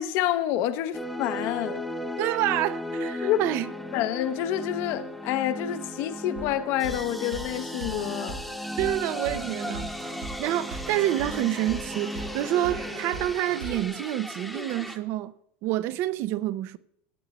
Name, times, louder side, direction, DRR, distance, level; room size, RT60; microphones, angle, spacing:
voice 1, 0.0-1.8 3.2-3.4 3.9-8.4, left 12 dB, 50° left, 0.8 m, -28 dB
sound 1, 0.9-15.0, equal, ahead, 1.0 m, -35 dB
voice 2, 2.2-3.7 8.8-9.9 10.4-15.3 15.6-16.8, right 14 dB, 45° right, 0.6 m, -28 dB
sound 2, 6.4-6.5 6.8-7.0 7.3-7.5 7.8-8.0 8.3-8.4 8.8-9.0 9.3-13.9, right 4 dB, 90° right, 3.2 m, -39 dB
16.5 x 9.0 x 3.0 m
supercardioid pair, 155°, 6 cm